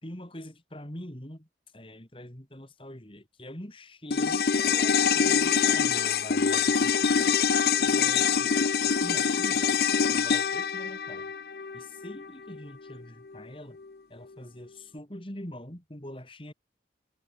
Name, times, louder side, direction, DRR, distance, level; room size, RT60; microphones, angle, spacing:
voice 1, 0.0-1.5 1.7-7.3 7.8-8.6 8.8-9.7 10.1-11.3 11.7-13.8 14.1-16.5, left 1 dB, 30° left, 3.4 m, -44 dB
sound 1, 4.1-12.6 12.9-13.0, left 6 dB, 55° left, 0.6 m, -25 dB
head